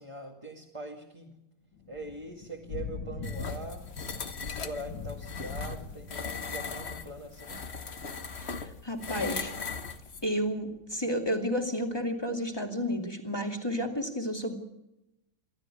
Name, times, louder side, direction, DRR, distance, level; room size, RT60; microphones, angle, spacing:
voice 1, 0.0-1.3 1.9-3.9 4.4-7.7, right 2 dB, 15° right, -1 dB, 2.2 m, -42 dB
Thunder / Rain, 1.7-11.3, left 5 dB, 85° left, 2.3 m, -43 dB
sound 1, 3.2-10.3, left 5 dB, 40° left, 1.3 m, -39 dB
voice 2, 8.4-9.5 10.2-14.5, equal, 15° left, 3 dB, 2.6 m, -31 dB
27.5 x 13.0 x 8.5 m, 0.92 s
omnidirectional pair, 2.0 m